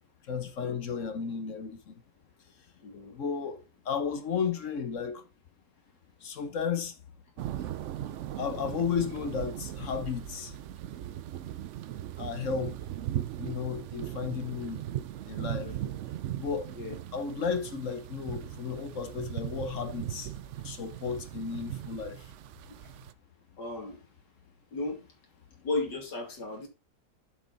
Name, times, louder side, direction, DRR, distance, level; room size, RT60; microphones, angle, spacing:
voice 1, 0.3-1.9 3.1-5.2 6.2-6.9 8.4-10.5 12.2-12.8 13.4-14.8 15.3-15.7 16.4-16.7 17.1-20.3 20.6-22.3, left 6 dB, 50° left, 1.2 m, -33 dB
voice 2, 2.8-3.2 15.6-15.9 16.8-17.0 22.7-22.8 23.6-24.0 24.7-25.0 25.6-26.7, left 2 dB, 80° left, 3.0 m, -35 dB
sound 1, 7.4-23.1, right 12 dB, 90° right, 0.6 m, -38 dB
7.4 x 6.6 x 4.0 m
omnidirectional pair, 1.8 m